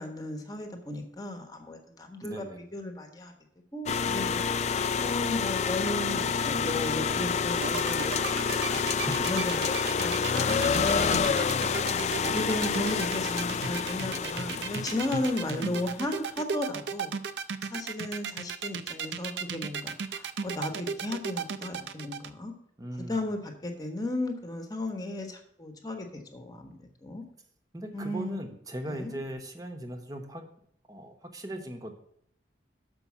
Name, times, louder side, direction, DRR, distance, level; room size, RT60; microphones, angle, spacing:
voice 1, 0.0-2.4 2.7-3.3 3.7-4.4 5.0-17.1 17.7-22.5 23.1-27.2 27.9-28.4 28.9-29.1, left 2 dB, 20° left, 4 dB, 1.2 m, -35 dB
voice 2, 2.2-2.6 8.9-9.3 10.8-11.8 15.6-15.9 22.8-23.2 27.7-30.4 30.9-32.0, right 1 dB, 20° right, 5 dB, 0.9 m, -38 dB
sound 1, 3.9-15.9, left 6 dB, 35° left, 0.3 m, -28 dB
sound 2, 7.5-22.3, right 6 dB, 70° right, 0.6 m, -35 dB
6.8 x 5.4 x 7.1 m, 0.72 s
head